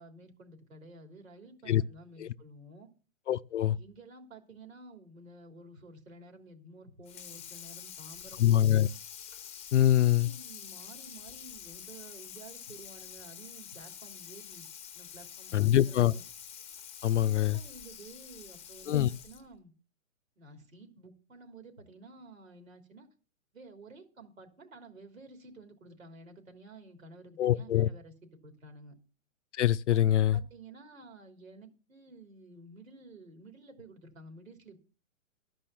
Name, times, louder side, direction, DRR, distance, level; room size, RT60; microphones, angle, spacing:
voice 1, 0.0-2.9 3.6-8.8 9.7-14.7 14.9-16.3 17.1-19.7 20.4-23.1 23.5-28.1 28.4-28.9 29.9-34.8, right 2 dB, 75° right, 3.3 m, -52 dB
voice 2, 3.3-3.8 8.4-8.9 9.7-10.3 15.5-16.1 17.0-17.6 18.9-19.1 27.4-27.9 29.5-30.4, left 12 dB, 60° left, 0.5 m, -24 dB
Water tap faucet / Sink (filling or washing), 7.0-19.5, left 9 dB, 15° left, 1.1 m, -47 dB
13.0 x 5.5 x 7.2 m
figure-of-eight pair, 120°, 40 cm